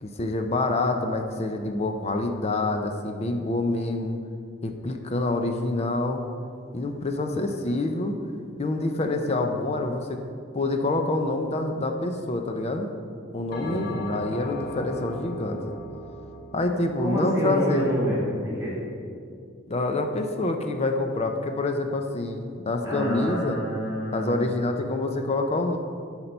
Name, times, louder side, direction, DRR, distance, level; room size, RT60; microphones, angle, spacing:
voice 1, 0.0-4.2 4.6-6.2 6.7-8.2 8.6-10.2 10.5-12.9 13.3-15.7 16.5-17.9 19.7-23.6 24.1-25.8, left 2 dB, 30° left, 5 dB, 0.5 m, -27 dB
Bell, 13.5-18.1, left 1 dB, 50° left, 1.0 m, -39 dB
voice 2, 17.0-18.8 22.8-24.5, equal, 5° right, -8 dB, 2.2 m, -27 dB
10.5 x 4.5 x 5.4 m, 2.3 s
head